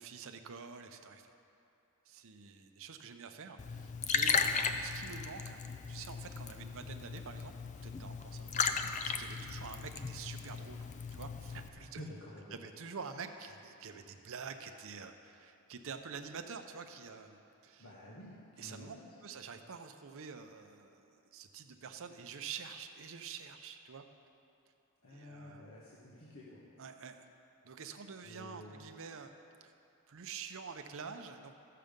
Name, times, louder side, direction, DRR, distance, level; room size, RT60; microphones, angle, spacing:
voice 1, 0.0-1.3 2.1-5.6 5.9-7.5 7.8-8.8 9.0-12.0 12.5-17.9 18.6-24.0 25.1-25.7 26.8-27.3 27.6-29.3 29.6-29.7 30.1-31.5, right 6 dB, 65° right, 6 dB, 0.6 m, -47 dB
Liquid, 3.6-11.7, left 6 dB, 35° left, 0.4 m, -36 dB
voice 2, 11.9-12.6 17.8-19.1 25.0-26.6 28.2-28.8, left 1 dB, 65° left, -6 dB, 1.3 m, -50 dB
14.0 x 6.7 x 5.2 m, 2.6 s
head